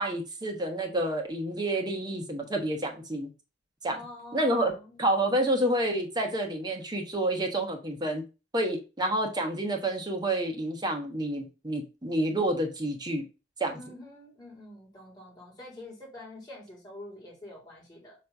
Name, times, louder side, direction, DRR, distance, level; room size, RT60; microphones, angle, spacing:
voice 1, 0.0-3.3 3.8-4.0 4.3-4.7 5.0-8.2 8.5-13.2 13.6-13.8, right 1 dB, 20° right, 3 dB, 1.1 m, -29 dB
voice 2, 3.9-5.1 13.7-18.1, left 1 dB, 20° left, -4 dB, 2.6 m, -46 dB
5.8 x 3.2 x 5.3 m, 0.31 s
head